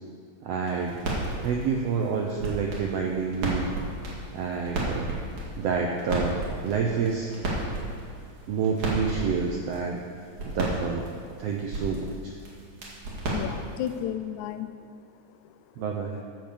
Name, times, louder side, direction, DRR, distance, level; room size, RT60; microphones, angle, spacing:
voice 1, 0.4-1.0 1.4-3.7 4.3-5.1 5.6-7.3 8.5-10.0 10.4-11.1 11.4-12.3 15.8-16.2, right 5 dB, 90° right, 1 dB, 1.4 m, -28 dB
sound 1, 0.6-14.0, right 2 dB, 65° right, 3.3 m, -34 dB
voice 2, 13.3-14.9 15.3-15.8, left 10 dB, 80° left, 10 dB, 1.8 m, -34 dB
13.5 x 5.1 x 6.8 m, 2.3 s
omnidirectional pair, 3.7 m